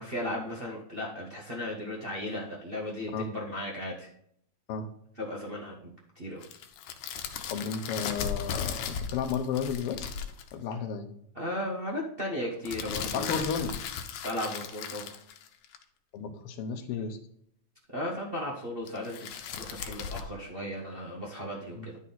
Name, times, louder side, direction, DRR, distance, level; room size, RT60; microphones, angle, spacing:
voice 1, 0.0-4.1 5.2-6.5 11.3-13.5 14.2-15.2 17.9-22.0, left 1 dB, 55° right, -3 dB, 0.6 m, -36 dB
sound 1, 6.4-10.5 12.7-15.8 18.9-20.2, left 7 dB, 85° left, 2.2 m, -36 dB
voice 2, 7.5-10.1 10.5-11.1 13.1-13.7 16.1-17.2 21.8-21.9, left 6 dB, 65° left, 6 dB, 1.6 m, -33 dB
11.0 x 4.4 x 4.1 m, 0.69 s
omnidirectional pair, 3.3 m